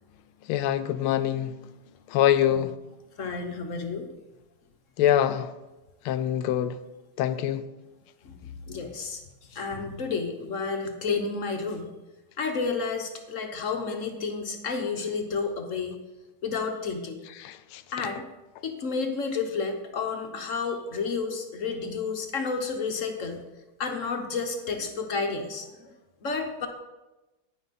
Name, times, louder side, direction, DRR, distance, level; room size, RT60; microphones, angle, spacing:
voice 1, 0.5-1.5 2.1-2.7 5.0-5.5 6.1-6.7 7.2-7.6 17.4-17.8, left 11 dB, 80° left, 12 dB, 1.4 m, -24 dB
voice 2, 3.2-4.1 8.2-9.2 9.5-11.9 12.4-16.0 16.4-17.2 17.9-18.2 18.6-23.4 23.8-25.9 26.2-26.7, left 4 dB, 55° left, 5 dB, 0.8 m, -31 dB
10.0 x 9.5 x 4.1 m, 1.1 s
omnidirectional pair, 2.4 m